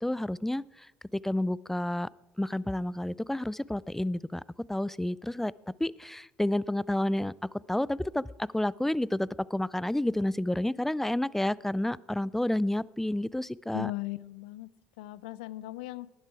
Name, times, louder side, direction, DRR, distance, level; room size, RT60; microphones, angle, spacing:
voice 1, 0.0-2.1 2.4-4.4 4.7-5.5 5.8-13.9, left 1 dB, 5° left, 22 dB, 0.4 m, -30 dB
voice 2, 13.7-14.7 15.0-16.1, left 17 dB, 80° left, 19 dB, 0.5 m, -37 dB
19.5 x 10.5 x 4.8 m, 1.0 s
hypercardioid pair, 65°, 5 cm